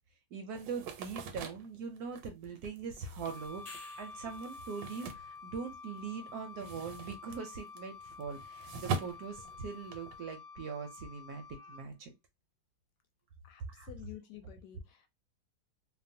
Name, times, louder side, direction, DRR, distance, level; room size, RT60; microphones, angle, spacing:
voice 1, 0.3-12.1 13.7-13.9, right 5 dB, 70° right, 0.9 m, -42 dB
sound 1, 0.5-6.0 6.3-10.2, right 4 dB, 85° right, 1.3 m, -43 dB
Wind instrument woodwind instrument, 3.2-11.9, left 4 dB, 20° left, 0.5 m, -49 dB
sound 2, 3.5-4.4 9.1-9.2, left 3 dB, 40° left, 0.9 m, -51 dB
voice 2, 13.4-15.1, left 12 dB, 75° left, 1.1 m, -51 dB
2.9 x 2.1 x 2.6 m
omnidirectional pair, 1.9 m